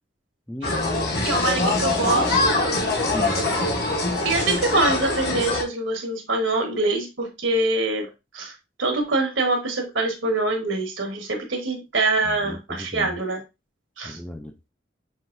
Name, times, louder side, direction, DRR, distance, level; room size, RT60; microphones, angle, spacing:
voice 1, 0.5-1.3 3.1-3.4 12.2-13.2 14.0-14.6, left 1 dB, 5° left, 0.4 m, -35 dB
sound 1, 0.6-5.6, left 2 dB, 55° left, 1.0 m, -23 dB
voice 2, 1.2-3.0 3.3-3.4 4.2-8.1 8.3-8.5 8.8-13.4 14.0-14.2, right 2 dB, 80° right, 1.3 m, -24 dB
5.6 x 2.9 x 2.6 m
head